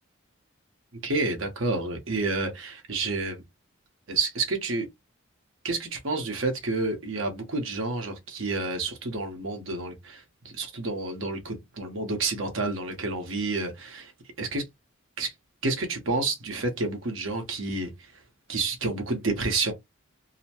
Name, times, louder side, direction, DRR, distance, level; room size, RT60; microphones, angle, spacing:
voice 1, 1.0-3.4 4.1-4.9 5.6-10.2 10.5-14.1 14.4-14.6 15.2-15.3 15.6-17.9 18.5-19.7, right 3 dB, 65° right, 1.0 m, -29 dB
2.8 x 2.1 x 2.8 m
head